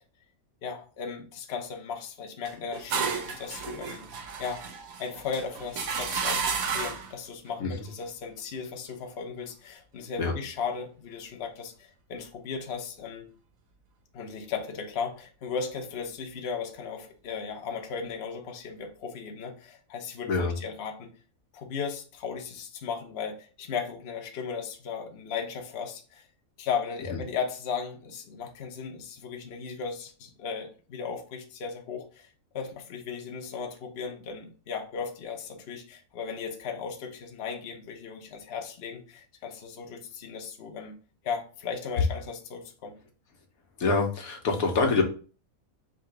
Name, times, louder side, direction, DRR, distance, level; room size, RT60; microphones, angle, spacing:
voice 1, 0.6-4.1 4.4-4.6 5.0-13.3 14.1-21.1 21.5-26.3 26.6-41.0 41.2-43.0, left 6 dB, 55° left, 3 dB, 0.9 m, -36 dB
sound 1, 2.4-7.1, right 6 dB, 75° right, 1.2 m, -32 dB
voice 2, 43.8-45.0, left 3 dB, 85° left, 3 dB, 1.4 m, -25 dB
3.7 x 2.9 x 4.6 m, 0.37 s
omnidirectional pair, 1.5 m